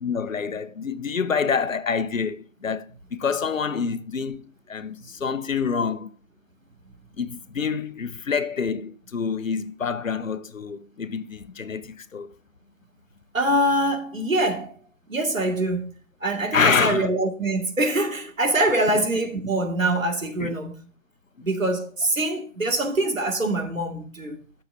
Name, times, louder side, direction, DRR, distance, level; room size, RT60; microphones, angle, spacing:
voice 1, 0.0-6.1 7.2-12.3 16.5-17.1 20.4-20.5, left 6 dB, 80° left, 0.9 m, -27 dB
voice 2, 13.3-14.8 15.1-15.9 16.2-20.8 21.4-24.4, right 1 dB, 85° right, 2.4 m, -24 dB
13.0 x 6.7 x 2.8 m
figure-of-eight pair, 145°, 39 cm